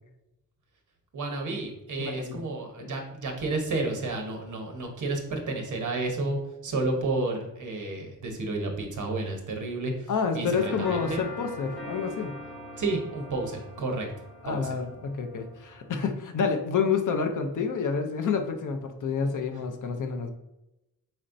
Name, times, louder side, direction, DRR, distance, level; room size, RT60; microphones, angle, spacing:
voice 1, 1.1-11.2 12.8-14.1 14.4-14.8, right 2 dB, 55° right, 2 dB, 0.9 m, -31 dB
voice 2, 2.1-2.4 2.8-2.9 10.1-12.4 14.4-20.3, left 5 dB, 60° left, 6 dB, 0.5 m, -28 dB
sound 1, 10.5-15.9, equal, ahead, 1.2 m, -42 dB
4.2 x 4.2 x 2.6 m, 0.91 s
wide cardioid pair, 180°, 36 cm